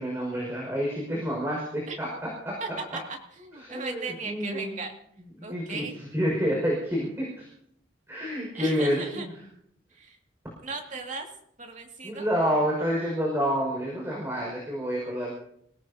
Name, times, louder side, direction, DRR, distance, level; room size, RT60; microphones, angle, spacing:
voice 1, 0.0-2.1 2.4-2.6 3.6-4.7 5.4-7.5 8.1-9.3 12.0-15.3, equal, 15° right, -3 dB, 5.8 m, -28 dB
voice 2, 2.6-4.9 5.4-6.0 8.5-9.3 9.9-10.2 10.6-11.3 11.6-12.3, right 3 dB, 40° right, 1 dB, 2.5 m, -37 dB
28.0 x 18.0 x 2.9 m, 0.72 s
head